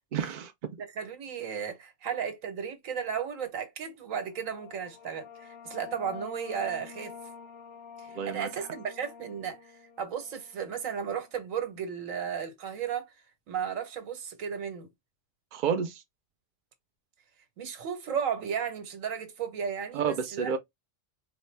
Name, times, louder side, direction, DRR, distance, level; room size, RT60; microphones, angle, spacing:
voice 1, 0.1-0.5 8.1-8.7 15.5-16.0 19.9-20.6, right 7 dB, 65° right, 0.5 m, -30 dB
voice 2, 0.9-7.1 8.0-9.6 10.0-13.1 13.5-14.9 17.6-20.5, right 7 dB, 85° right, 1.3 m, -34 dB
sound 1, 4.2-11.4, left 7 dB, 65° left, 0.7 m, -48 dB
4.0 x 2.2 x 3.1 m
omnidirectional pair, 1.3 m